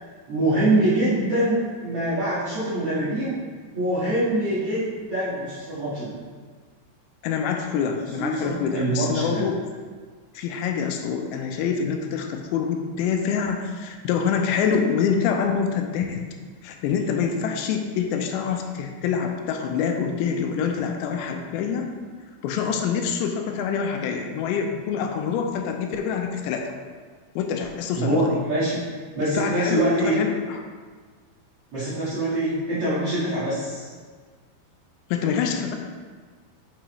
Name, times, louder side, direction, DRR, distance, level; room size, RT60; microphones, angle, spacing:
voice 1, 0.3-3.3 3.7-6.1 8.2-9.4 27.9-30.1 31.7-33.9, right 1 dB, 55° right, -14 dB, 1.7 m, -24 dB
voice 2, 7.2-9.6 10.4-16.2 16.6-21.9 22.4-26.7 27.4-28.4 29.2-30.3 35.1-35.8, left 6 dB, 85° left, 4 dB, 2.7 m, -26 dB
6.2 x 5.5 x 3.0 m, 1.5 s
omnidirectional pair, 5.0 m